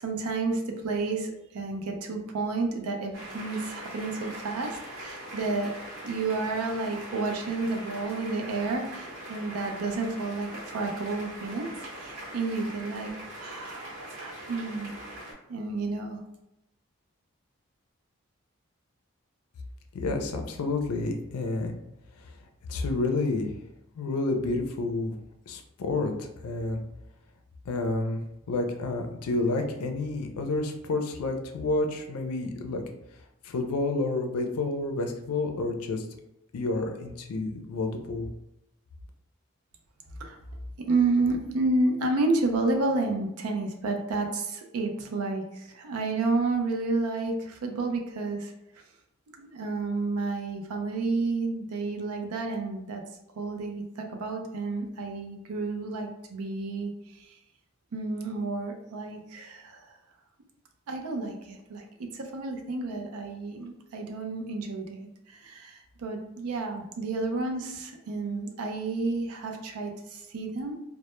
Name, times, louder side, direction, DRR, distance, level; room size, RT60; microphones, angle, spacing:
voice 1, 0.0-5.7 6.0-11.7 11.9-13.1 13.4-14.9 15.5-16.2 40.2-40.4 40.9-48.5 49.4-53.0 53.4-56.9 57.9-59.9 60.9-70.8, right 3 dB, 85° right, 3 dB, 0.4 m, -30 dB
sound 1, 3.1-15.3, right 1 dB, 60° right, 0.8 m, -41 dB
voice 2, 19.9-21.7 22.7-23.5 24.0-25.1 25.5-26.8 27.7-28.2 28.5-32.8 33.4-36.0 36.5-38.3, left 2 dB, 90° left, 4 dB, 0.4 m, -29 dB
2.1 x 2.1 x 2.9 m, 0.86 s
head